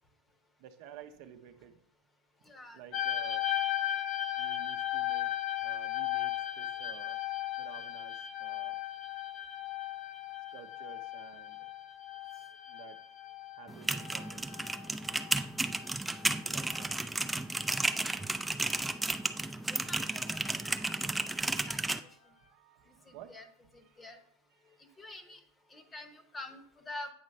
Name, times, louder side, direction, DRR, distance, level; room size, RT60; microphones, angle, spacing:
voice 1, 0.6-1.8 2.7-3.4 4.4-5.3 5.6-7.2 7.6-8.8 10.5-11.7 12.3-13.0 13.5-14.6 16.4-16.9 21.3-24.2 24.5-25.1 25.8-25.9, right 9 dB, 60° right, 7 dB, 0.7 m, -53 dB
voice 2, 2.5-2.8 19.9-20.2 20.5-21.0 21.7-21.8 23.1-23.4 24.0-24.2 24.8-25.4 25.7-27.1, left 2 dB, 20° left, 8 dB, 0.9 m, -46 dB
sound 1, 2.9-16.9 17.7-17.9, left 12 dB, 45° left, 0.5 m, -36 dB
sound 2, 13.7-22.0, right 2 dB, 5° right, 0.4 m, -33 dB
8.6 x 3.1 x 5.3 m, 0.63 s
supercardioid pair, 115°, 0 cm